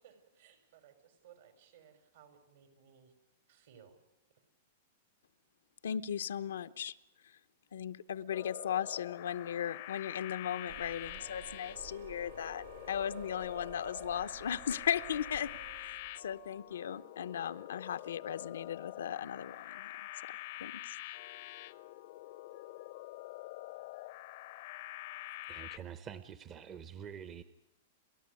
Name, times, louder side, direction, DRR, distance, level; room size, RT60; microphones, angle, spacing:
voice 1, 0.0-3.1 3.5-4.0, right 8 dB, 70° right, 8 dB, 5.3 m, -60 dB
voice 2, 5.8-7.0 7.2-7.4 7.7-15.5 15.8-20.1 20.6-21.0, left 9 dB, 90° left, 10 dB, 0.9 m, -37 dB
sound 1, 8.3-25.8, left 17 dB, 55° left, 0.7 m, -46 dB
sound 2, 10.7-16.6, right 9 dB, 85° right, 2.7 m, -53 dB
voice 3, 25.5-27.4, right 8 dB, 25° right, 12 dB, 0.9 m, -46 dB
29.5 x 13.5 x 9.6 m, 0.91 s
hypercardioid pair, 150°, 0 cm